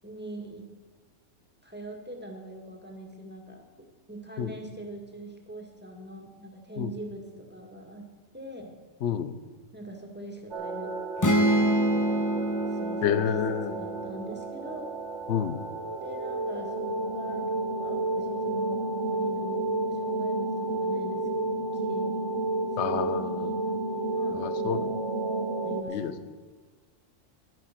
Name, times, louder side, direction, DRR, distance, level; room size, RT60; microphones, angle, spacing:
voice 1, 0.0-0.7 1.6-8.1 8.3-8.7 9.7-10.9 11.2-14.8 16.0-22.3 22.8-24.8 25.6-26.2, right 1 dB, 10° right, 1 dB, 1.9 m, -43 dB
voice 2, 9.0-9.3 13.0-13.7 15.3-15.6 22.8-23.5 24.4-24.9 25.9-26.1, left 9 dB, 65° left, 13 dB, 1.0 m, -29 dB
sound 1, 10.5-25.8, right 2 dB, 65° right, 1.4 m, -31 dB
sound 2, 11.2-14.9, equal, 25° left, 0.4 m, -27 dB
11.5 x 10.5 x 5.9 m, 1.5 s
omnidirectional pair, 1.3 m